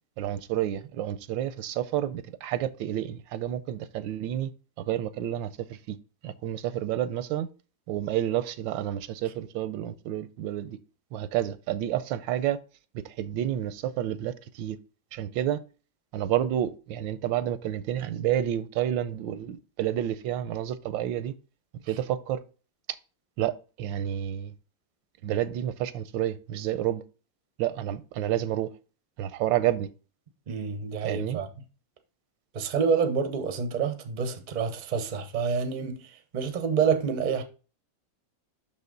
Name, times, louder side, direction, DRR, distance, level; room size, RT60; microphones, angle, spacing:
voice 1, 0.2-4.5 4.8-5.5 5.9-6.0 6.2-7.5 7.9-10.8 11.1-12.6 12.9-14.8 15.1-15.6 16.1-21.3 21.9-22.4 23.4-23.5 23.8-24.5 25.2-27.0 27.6-28.7 29.2-29.9 31.0-31.4, right 11 dB, 85° right, 1.3 m, -29 dB
voice 2, 30.5-31.5 32.5-37.4, right 6 dB, 45° right, 0.5 m, -28 dB
6.0 x 5.6 x 3.8 m
omnidirectional pair, 2.0 m